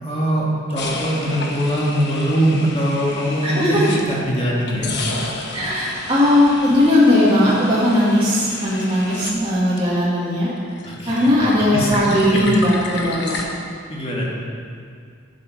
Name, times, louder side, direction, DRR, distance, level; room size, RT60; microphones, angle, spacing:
voice 1, 0.0-5.0 10.8-11.9 12.3-12.4 13.9-14.3, equal, 25° left, -4 dB, 1.9 m, -22 dB
sound 1, 0.8-4.3 4.7-10.2 10.5-13.4, left 3 dB, 55° left, 1.1 m, -32 dB
voice 2, 3.4-3.8 5.5-10.5 11.1-13.4, left 1 dB, 25° right, -9 dB, 2.0 m, -18 dB
11.5 x 7.6 x 5.3 m, 2.2 s
head